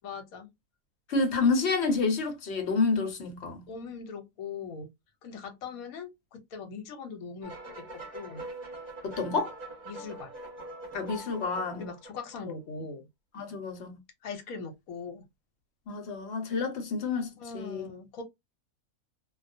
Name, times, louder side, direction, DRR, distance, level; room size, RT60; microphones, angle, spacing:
voice 1, 0.0-0.5 3.7-4.9 5.2-7.9 8.1-8.5 9.9-10.3 11.8-13.1 14.2-15.2 17.4-18.2, left 5 dB, 85° left, 1.1 m, -41 dB
voice 2, 1.1-3.7 9.0-9.5 10.9-11.9 13.3-13.9 15.9-17.9, left 4 dB, 60° left, 0.9 m, -29 dB
sound 1, 7.4-12.4, right 1 dB, 35° right, 0.8 m, -43 dB
2.3 x 2.1 x 2.5 m
omnidirectional pair, 1.4 m